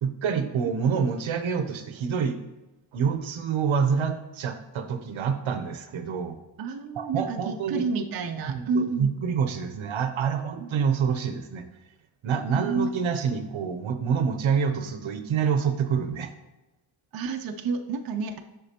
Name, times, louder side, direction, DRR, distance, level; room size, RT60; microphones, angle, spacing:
voice 1, 0.0-2.4 2.9-6.4 7.0-7.9 8.5-11.6 12.2-16.3, right 6 dB, 80° right, 8 dB, 0.8 m, -27 dB
voice 2, 6.6-9.1 10.6-10.7 12.5-12.9 17.1-18.4, right 4 dB, 50° right, 5 dB, 0.6 m, -29 dB
8.1 x 6.0 x 2.9 m, 1.0 s
wide cardioid pair, 135°, 47 cm